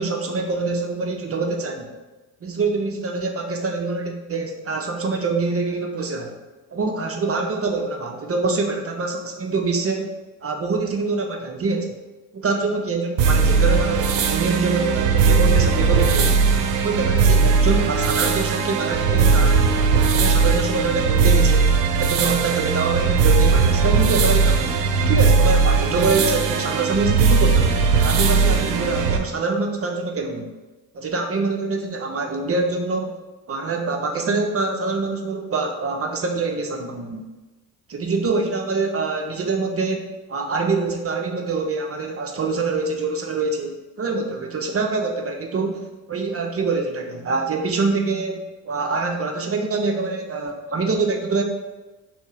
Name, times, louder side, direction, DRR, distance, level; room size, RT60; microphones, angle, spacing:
voice 1, 0.0-1.9 2.4-6.4 6.7-10.1 10.4-12.0 12.3-16.5 16.8-19.8 20.1-21.6 22.0-24.8 25.1-27.7 28.0-30.5 30.9-33.1 33.5-37.2 37.9-51.4, right 3 dB, 30° right, 2 dB, 0.6 m, -25 dB
sound 1, 13.2-29.2, right 5 dB, 70° right, 0.7 m, -18 dB
3.5 x 2.7 x 4.7 m, 1.2 s
hypercardioid pair, 55°, 49 cm